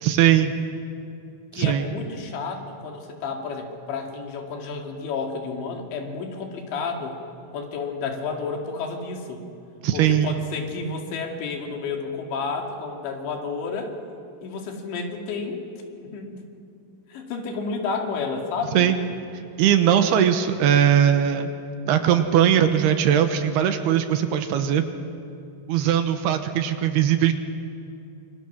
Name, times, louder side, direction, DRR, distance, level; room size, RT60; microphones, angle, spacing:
voice 1, 0.0-0.5 1.5-1.9 9.8-10.4 18.7-19.0 19.6-21.5 21.9-24.8 25.7-27.3, right 10 dB, 75° right, 8 dB, 2.9 m, -20 dB
voice 2, 1.5-7.2 7.5-9.5 9.9-13.9 14.4-15.6 16.0-16.5 17.1-18.9, left 4 dB, 85° left, 2 dB, 4.5 m, -31 dB
26.5 x 24.0 x 6.2 m, 2.6 s
omnidirectional pair, 5.0 m